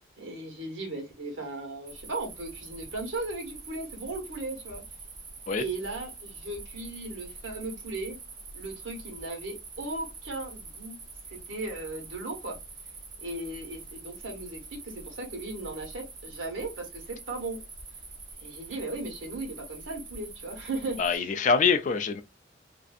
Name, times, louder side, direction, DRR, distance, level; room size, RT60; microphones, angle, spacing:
voice 1, 0.2-4.8 5.6-8.2 8.5-11.0 11.3-12.6 13.2-17.6 18.4-21.2, right 2 dB, 85° right, 1.1 m, -37 dB
sound 1, 1.9-21.2, right 4 dB, 20° right, 0.5 m, -45 dB
voice 2, 21.0-22.2, left 5 dB, 40° left, 0.3 m, -24 dB
2.6 x 2.5 x 2.3 m
head